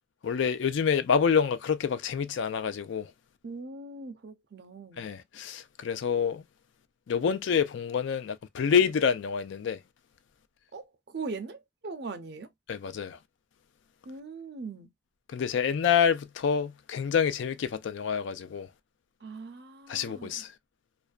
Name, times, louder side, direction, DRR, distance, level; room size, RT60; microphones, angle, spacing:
voice 1, 0.2-3.1 5.0-6.4 7.1-9.8 12.7-13.2 15.3-18.7 19.9-20.5, left 7 dB, 70° left, 0.3 m, -27 dB
voice 2, 3.4-5.1 10.7-12.5 14.1-14.9 19.2-20.4, right 4 dB, 55° right, 0.5 m, -40 dB
2.5 x 2.1 x 2.3 m
head